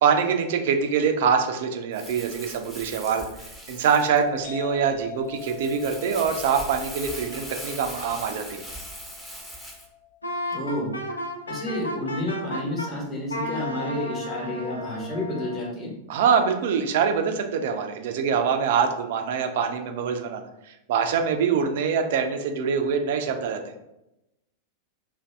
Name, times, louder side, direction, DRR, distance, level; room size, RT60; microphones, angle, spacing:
voice 1, 0.0-3.2 3.7-8.6 16.1-23.7, right 6 dB, 55° right, 6 dB, 0.3 m, -24 dB
Crumpling crinkling, 1.9-9.9, equal, 5° left, 0.6 m, -40 dB
sound 1, 4.4-11.9, left 9 dB, 55° left, 0.8 m, -43 dB
Wind instrument woodwind instrument, 10.2-12.9 13.3-15.7, left 1 dB, 80° left, 0.4 m, -33 dB
voice 2, 10.5-10.9 11.5-15.9, left 1 dB, 30° left, -3 dB, 1.1 m, -30 dB
2.6 x 2.2 x 3.3 m, 0.89 s
figure-of-eight pair, 90°, 0 cm